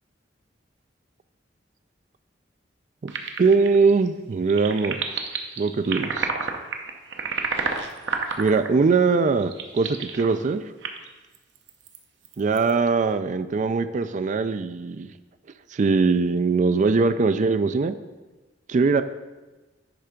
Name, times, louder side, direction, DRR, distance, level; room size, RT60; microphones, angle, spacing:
sound 1, 3.1-4.1 4.3-8.8 9.4-10.4 10.8-11.1 11.3-12.0 12.3-12.7, right 5 dB, 75° right, 0.8 m, -30 dB
voice 1, 3.4-5.2 5.6-6.3 8.4-10.6 12.4-15.1 15.7-17.9 18.7-19.0, right 4 dB, 45° right, 12 dB, 0.4 m, -21 dB
10.0 x 3.4 x 5.1 m, 1.2 s
head